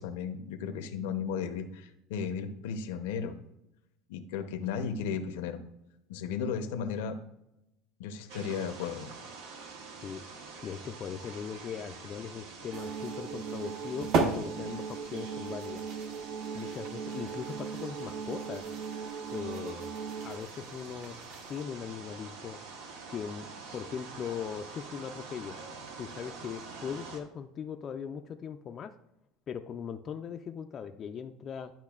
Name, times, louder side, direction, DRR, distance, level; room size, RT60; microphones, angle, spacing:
voice 1, 0.0-3.4 4.1-5.6 6.1-7.2 8.0-9.1, left 6 dB, 90° left, 7 dB, 0.7 m, -35 dB
sound 1, 8.3-27.2, right 4 dB, 85° right, 1.1 m, -46 dB
voice 2, 10.6-14.1 14.3-15.8 16.5-18.7 19.3-19.9 20.2-21.2 21.5-22.6 23.1-25.6 26.0-28.9 29.5-31.7, left 7 dB, 30° left, 6 dB, 0.3 m, -39 dB
sound 2, 12.7-21.6, right 4 dB, 50° right, 0.9 m, -38 dB
sound 3, 12.7-20.4, right 6 dB, 65° right, 0.5 m, -39 dB
10.5 x 5.6 x 2.4 m, 0.86 s
cardioid pair, 145°, 0 cm